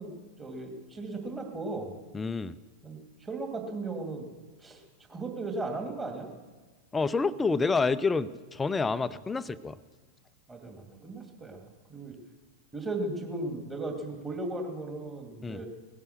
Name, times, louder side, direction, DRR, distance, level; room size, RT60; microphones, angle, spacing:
voice 1, 0.0-1.9 2.8-4.2 4.6-4.8 5.1-6.3 10.5-12.1 12.7-15.7, right 2 dB, 15° right, 3 dB, 2.4 m, -36 dB
voice 2, 2.1-2.5 6.9-9.8 15.4-15.6, left 4 dB, 15° left, 15 dB, 0.5 m, -28 dB
18.5 x 11.0 x 6.6 m, 1.3 s
figure-of-eight pair, 90°, 0 cm